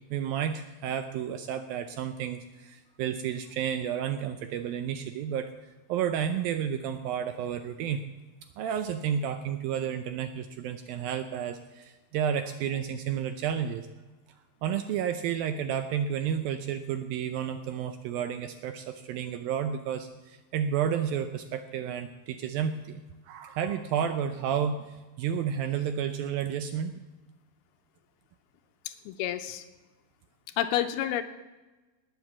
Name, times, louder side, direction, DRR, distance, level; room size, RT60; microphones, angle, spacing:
voice 1, 0.1-5.5 5.9-8.0 8.6-13.9 14.6-27.0, right 8 dB, 80° right, 9 dB, 2.2 m, -31 dB
voice 2, 29.1-29.6 30.6-31.2, left 11 dB, 80° left, 8 dB, 2.5 m, -29 dB
19.5 x 8.0 x 7.2 m, 1.2 s
omnidirectional pair, 4.8 m